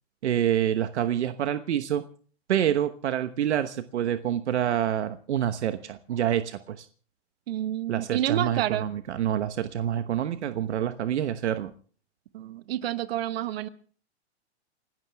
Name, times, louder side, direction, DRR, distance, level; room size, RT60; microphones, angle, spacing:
voice 1, 0.2-2.0 2.5-6.9 7.9-11.7, right 10 dB, 75° right, 1.2 m, -27 dB
voice 2, 7.5-8.9 12.3-13.7, right 12 dB, 60° right, 1.4 m, -29 dB
29.5 x 12.5 x 3.5 m
hypercardioid pair, 145°, 34 cm